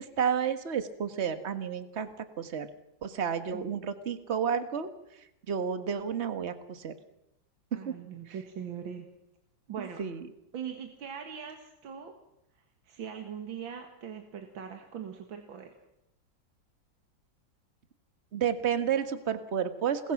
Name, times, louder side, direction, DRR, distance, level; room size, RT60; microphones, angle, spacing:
voice 1, 0.0-2.7 3.0-4.9 5.5-6.9 7.8-7.9 9.8-10.3 18.3-20.1, right 7 dB, 35° right, 10 dB, 1.6 m, -31 dB
voice 2, 3.5-3.8 7.7-9.1 9.7-10.0 10.5-12.1 12.8-15.7, right 8 dB, 85° right, 4 dB, 2.5 m, -41 dB
28.5 x 21.0 x 6.0 m, 0.84 s
omnidirectional pair, 2.1 m